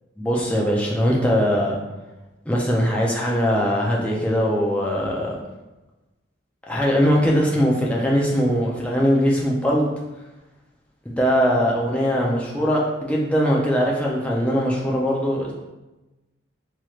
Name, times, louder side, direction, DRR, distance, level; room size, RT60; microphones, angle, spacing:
voice 1, 0.2-1.8 2.5-5.4 6.7-9.9 11.1-15.5, equal, 5° left, -3 dB, 0.4 m, -21 dB
3.0 x 2.9 x 2.4 m, 1.1 s
head